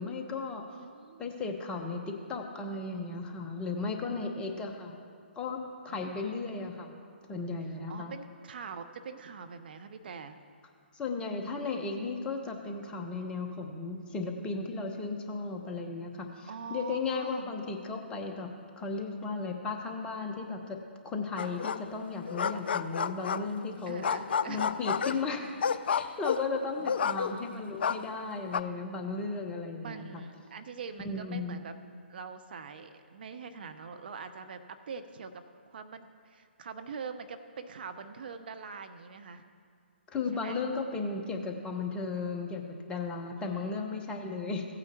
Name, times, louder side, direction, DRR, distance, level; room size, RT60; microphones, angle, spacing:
voice 1, 0.0-0.6 1.2-5.0 5.3-7.0 7.3-8.1 10.9-24.0 24.5-25.5 25.9-30.2 31.0-31.6 40.1-44.7, left 4 dB, 15° left, 2 dB, 0.9 m, -35 dB
voice 2, 0.7-1.3 4.0-4.6 5.9-6.5 7.9-10.4 16.5-17.5 23.9-24.7 25.0-25.2 26.8-27.4 29.8-31.7 32.1-35.4 35.7-39.4 40.3-40.6 43.4-43.7, right 5 dB, 55° right, 9 dB, 0.6 m, -44 dB
sound 1, 21.4-22.0 22.3-23.6 24.0-27.5 27.8-28.6, left 6 dB, 60° left, 0.4 m, -30 dB
16.0 x 8.8 x 3.0 m, 2.2 s
figure-of-eight pair, 130°, 6 cm